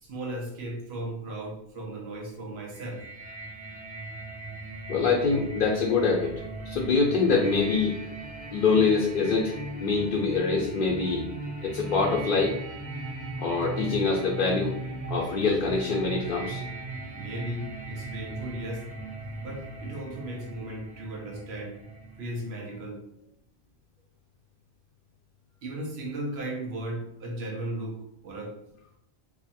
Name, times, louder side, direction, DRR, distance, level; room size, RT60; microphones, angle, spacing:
voice 1, 0.0-3.0 17.1-18.9 19.4-21.8 22.2-23.0 25.6-28.6, right 1 dB, 85° right, 0 dB, 1.1 m, -36 dB
sound 1, 2.7-22.5, right 2 dB, 10° right, 0.8 m, -38 dB
voice 2, 4.9-6.3 6.6-7.9 8.5-9.5 9.8-11.2 11.6-12.5 13.4-14.8 15.1-16.6, left 4 dB, 60° left, -2 dB, 0.7 m, -24 dB
2.7 x 2.4 x 4.1 m, 0.77 s
omnidirectional pair, 1.0 m